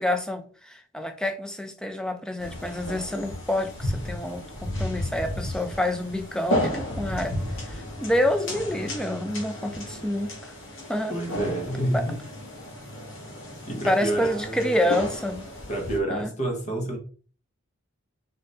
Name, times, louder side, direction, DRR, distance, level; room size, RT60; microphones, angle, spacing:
voice 1, 0.0-10.3 10.9-11.2 11.9-12.0 13.8-15.5 16.1-16.3, left 1 dB, 5° left, 0.4 m, -28 dB
sound 1, 2.4-16.0, left 1 dB, 60° left, 1.8 m, -33 dB
voice 2, 11.1-12.2 13.7-15.0 15.7-17.0, right 1 dB, 30° left, 1.0 m, -29 dB
4.0 x 3.9 x 3.2 m
head